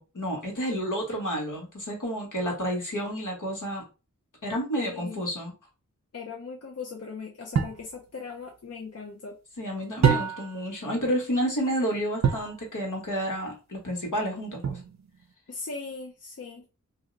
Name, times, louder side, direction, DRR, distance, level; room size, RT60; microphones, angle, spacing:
voice 1, 0.0-3.8 4.4-5.5 9.6-14.8, equal, 70° left, 1.3 m, -30 dB
voice 2, 4.7-5.2 6.1-9.4 15.5-16.7, left 5 dB, 50° left, 0.6 m, -39 dB
sound 1, 7.5-7.9 10.0-10.6 12.2-12.6 14.6-15.2, right 7 dB, 55° right, 0.6 m, -25 dB
2.6 x 2.0 x 3.8 m
wide cardioid pair, 60°, 32 cm